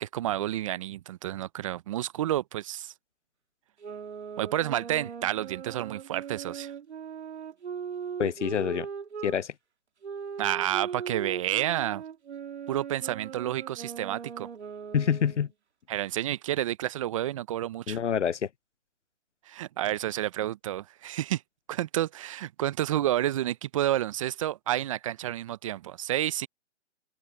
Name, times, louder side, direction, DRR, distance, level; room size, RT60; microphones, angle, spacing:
voice 1, 0.0-2.9 4.4-6.7 10.4-12.0 12.7-14.5 15.9-18.0 19.5-21.4 21.7-26.5, right 13 dB, 30° right, 0.7 m, -30 dB
sound 1, 3.8-9.4 10.0-15.5, right 7 dB, 70° right, 2.3 m, -39 dB
voice 2, 8.2-8.9 9.2-9.5 14.9-15.5 17.9-18.4, left 8 dB, 85° left, 0.8 m, -26 dB
open air
hypercardioid pair, 145°, 35 cm